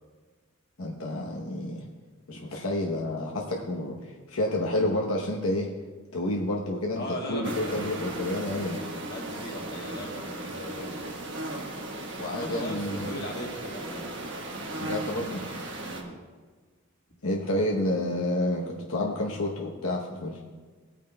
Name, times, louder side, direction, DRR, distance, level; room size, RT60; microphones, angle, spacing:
voice 1, 0.8-1.8 2.3-5.7 6.1-8.8 12.2-13.1 14.8-15.5 17.2-20.4, left 1 dB, 75° left, -1 dB, 0.9 m, -29 dB
voice 2, 6.9-8.1 8.8-11.1 12.3-14.1 15.8-16.2, equal, 45° left, -1 dB, 1.7 m, -38 dB
sound 1, 7.4-16.0, right 1 dB, 55° right, 1.3 m, -36 dB
18.0 x 8.9 x 2.2 m, 1.4 s
head